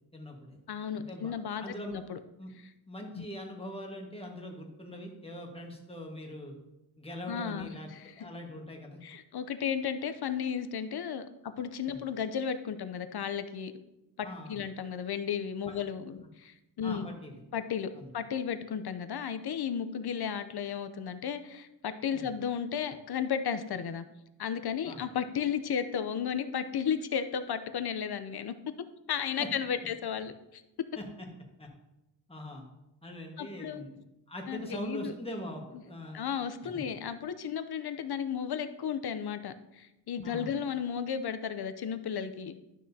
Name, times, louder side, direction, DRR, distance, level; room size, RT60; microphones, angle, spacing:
voice 1, 0.1-0.6 1.0-1.3 1.6-2.0 2.4-2.5 2.9-6.5 7.0-7.9 8.2-9.0 11.9-12.0 14.2-14.6 15.7-15.8 16.2-16.3 16.8-17.4 17.9-18.1 22.1-22.3 24.8-25.0 29.4-29.5 31.0-31.3 31.6-31.7 32.3-32.6 33.0-34.0 34.3-36.2 36.6-36.8 40.2-40.5, equal, 15° left, 0 dB, 1.5 m, -42 dB
voice 2, 0.7-2.2 3.2-3.3 7.3-8.3 9.0-13.7 14.2-17.1 17.5-24.0 24.4-28.5 29.1-30.6 33.4-33.8 34.5-35.1 36.1-42.6, left 7 dB, 55° left, 10 dB, 0.7 m, -34 dB
12.0 x 6.2 x 2.8 m, 0.91 s
wide cardioid pair, 105°, 45 cm